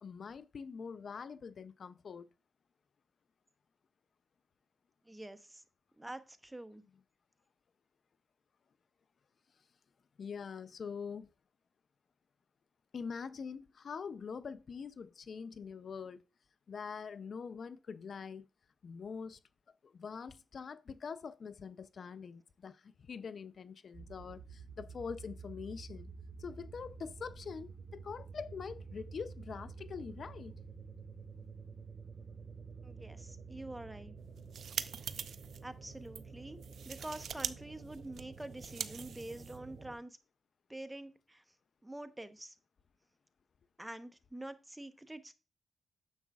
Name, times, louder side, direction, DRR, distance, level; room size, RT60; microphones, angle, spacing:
voice 1, 0.0-2.3 10.2-11.3 12.9-16.2 16.7-18.4 18.8-19.4 19.8-26.1 26.4-30.6, left 6 dB, 60° left, 0.5 m, -44 dB
voice 2, 5.0-5.6 6.0-6.8 32.8-34.1 35.0-35.1 35.6-36.6 36.8-40.2 40.7-41.4 41.8-42.6 43.8-45.3, right 1 dB, 10° right, 0.9 m, -46 dB
sound 1, 23.9-39.9, right 5 dB, 55° right, 2.3 m, -50 dB
sound 2, 34.3-35.6 36.1-36.2 36.6-37.5 37.8-39.8, right 7 dB, 75° right, 0.5 m, -42 dB
9.6 x 7.0 x 2.3 m
cardioid pair, 75°, 0 cm